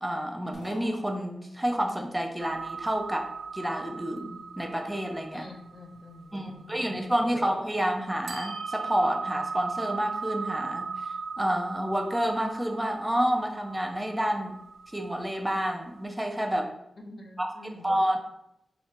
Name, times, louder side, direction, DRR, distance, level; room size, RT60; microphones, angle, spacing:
voice 1, 0.0-3.3 3.5-5.4 6.3-10.9 11.4-14.6 14.9-16.7 17.4-17.5 17.8-18.2, equal, 10° right, 2 dB, 0.5 m, -29 dB
sound 1, 0.5-1.8, left 2 dB, 85° left, 1.1 m, -49 dB
sound 2, 2.4-7.6 8.3-15.7, right 5 dB, 85° right, 0.3 m, -38 dB
voice 2, 5.3-7.0 7.3-7.5 17.1-18.0, left 1 dB, 50° left, 1 dB, 0.7 m, -47 dB
2.9 x 2.3 x 4.3 m, 0.81 s
cardioid pair, 65°, 0 cm